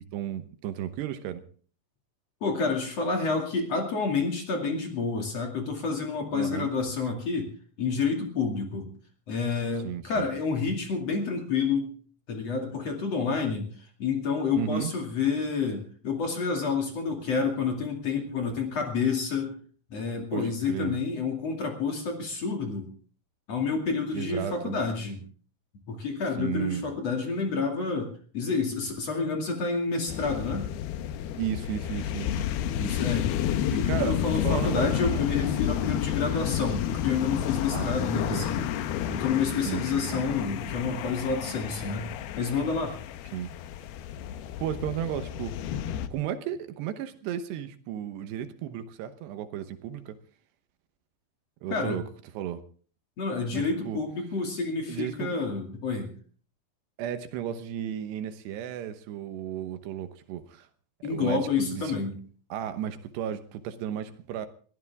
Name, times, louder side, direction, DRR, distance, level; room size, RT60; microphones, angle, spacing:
voice 1, 0.0-1.4 6.3-6.7 9.8-10.3 14.5-14.9 20.3-21.0 24.1-24.7 26.4-26.8 31.3-32.4 32.8-33.0 33.7-34.9 37.7-38.0 38.3-38.5 39.7-40.2 43.3-43.5 44.6-45.6 46.1-50.2 51.6-52.0 52.3-52.6 53.5-54.0 54.9-55.4 57.0-60.7 61.0-62.0 62.5-64.5, right 10 dB, 75° right, 10 dB, 3.1 m, -34 dB
voice 2, 2.4-7.5 7.8-8.9 9.3-11.9 12.3-19.6 19.9-22.9 23.5-25.2 25.9-30.6 32.7-33.2 33.8-38.6 39.1-42.1 42.3-43.0 51.7-52.0 53.2-56.1 61.0-62.1, left 4 dB, 40° left, 3 dB, 3.0 m, -29 dB
sound 1, 30.1-46.1, left 10 dB, 75° left, 2.7 m, -30 dB
22.0 x 15.0 x 3.6 m, 0.43 s
omnidirectional pair, 5.1 m